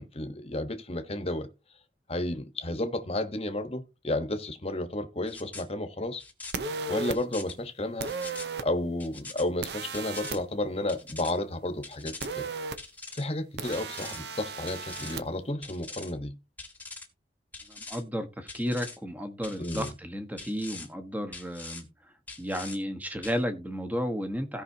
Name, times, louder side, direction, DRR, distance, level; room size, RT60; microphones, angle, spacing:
voice 1, 0.0-1.5 2.1-6.2 6.9-8.1 8.6-12.5 13.1-16.4 19.6-19.9, left 1 dB, 35° left, 1.1 m, -32 dB
sound 1, 5.3-5.6 6.2-6.5 7.1-7.5 8.1-8.5 9.0-9.4 9.9-10.4 10.9-11.3 11.8-12.3 12.8-13.2 13.7-14.2 14.7-15.2 15.6-16.1 16.6-17.1 17.5-18.0 18.5-19.0 19.4-19.9 20.4-20.9 21.3-21.8 22.3-22.8 23.2-23.4, left 3 dB, 10° left, 1.4 m, -43 dB
sound 2, 6.5-7.2 8.0-8.7 9.6-10.4 12.2-12.8 13.6-15.2, right 4 dB, 70° right, 0.8 m, -35 dB
voice 2, 17.7-21.8 22.4-24.6, equal, 10° right, 1.2 m, -33 dB
16.5 x 5.5 x 2.8 m
head